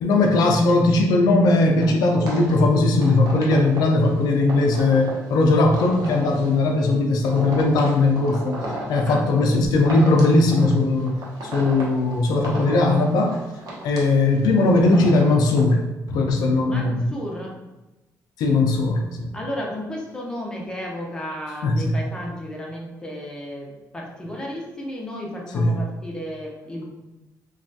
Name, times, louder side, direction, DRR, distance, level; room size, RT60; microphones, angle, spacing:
voice 1, 0.0-8.6 8.9-11.2 11.4-13.4 13.8-17.0 18.4-19.3 21.6-22.0 25.5-25.8, left 2 dB, 80° left, 2 dB, 0.4 m, -19 dB
sound 1, 1.8-15.6, right 1 dB, 70° right, 0.8 m, -36 dB
voice 2, 16.6-17.5 19.3-26.9, equal, 10° left, -2 dB, 0.7 m, -33 dB
3.1 x 2.3 x 2.6 m, 1.0 s
cardioid pair, 110°, 7 cm